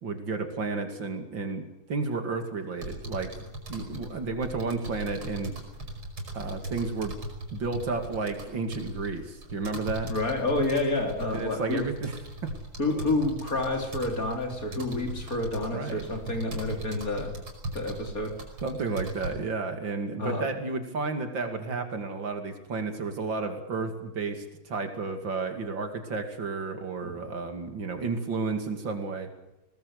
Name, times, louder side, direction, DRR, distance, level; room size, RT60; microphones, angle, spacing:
voice 1, 0.0-3.3 3.7-5.5 6.3-7.2 7.5-10.1 11.3-12.1 12.9-13.0 15.7-16.0 18.6-29.3, right 4 dB, 65° right, 6 dB, 3.1 m, -32 dB
sound 1, 2.8-19.3, right 1 dB, 85° right, 6.2 m, -39 dB
voice 2, 10.1-11.8 12.8-17.4 17.7-18.4 20.2-20.5 27.0-27.1, left 2 dB, 40° left, 4 dB, 3.7 m, -29 dB
21.5 x 19.0 x 8.2 m, 0.94 s
omnidirectional pair, 2.3 m